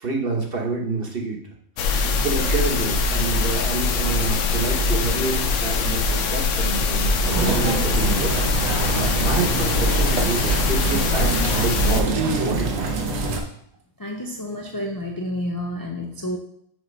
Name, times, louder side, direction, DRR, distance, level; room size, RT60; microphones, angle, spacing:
voice 1, 0.0-1.4 1.8-8.4 8.8-12.9, right 4 dB, 50° right, -1 dB, 1.2 m, -28 dB
sound 1, 1.8-12.0, left 4 dB, 70° left, 1.0 m, -22 dB
sound 2, 7.2-13.4, right 3 dB, 90° right, 1.2 m, -25 dB
voice 2, 14.0-16.4, left 1 dB, 35° left, 0 dB, 0.3 m, -29 dB
6.3 x 2.9 x 5.3 m, 0.69 s
omnidirectional pair, 1.4 m